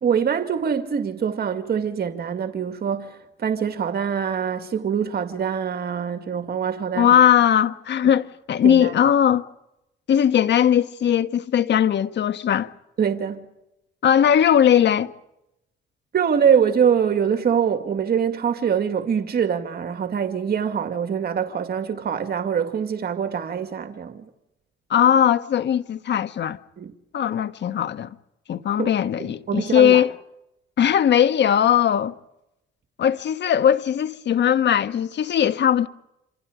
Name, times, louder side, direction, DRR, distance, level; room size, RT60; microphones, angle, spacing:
voice 1, 0.0-7.1 8.6-8.9 13.0-13.5 16.1-24.3 26.8-26.9 28.8-28.9 29.2-30.0, right 7 dB, 50° right, 2.3 m, -24 dB
voice 2, 6.9-9.4 10.1-12.7 14.0-15.1 24.9-26.6 27.1-28.1 28.5-30.1 30.8-32.1 33.0-35.9, left 9 dB, 60° left, 1.5 m, -19 dB
28.0 x 27.0 x 5.1 m
cardioid pair, 90°, 20 cm